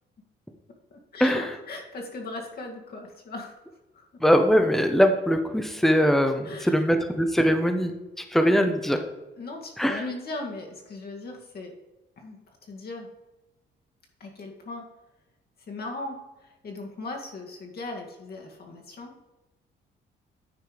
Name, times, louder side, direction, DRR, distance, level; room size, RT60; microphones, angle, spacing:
voice 1, 0.9-3.6 3.9-4.1 6.4-6.8 9.4-11.7 12.2-13.1 14.2-14.9 15.7-19.2, left 2 dB, 50° left, 1 dB, 1.9 m, -38 dB
voice 2, 4.2-9.0 9.8-10.0, equal, ahead, 6 dB, 0.9 m, -22 dB
9.5 x 4.4 x 5.1 m, 1.0 s
cardioid pair, 90°, 20 cm